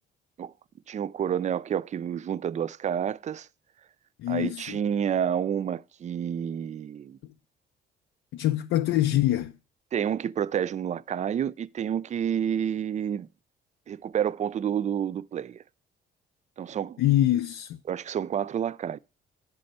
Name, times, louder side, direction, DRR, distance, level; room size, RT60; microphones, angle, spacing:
voice 1, 0.9-3.5 4.3-7.2 9.9-13.3 13.9-15.6 16.6-17.0 17.9-19.0, right 9 dB, 35° right, 0.4 m, -29 dB
voice 2, 4.2-4.8 8.3-9.5 17.0-17.8, left 13 dB, 90° left, 0.5 m, -24 dB
10.5 x 4.2 x 6.5 m
cardioid pair, 90°, 20 cm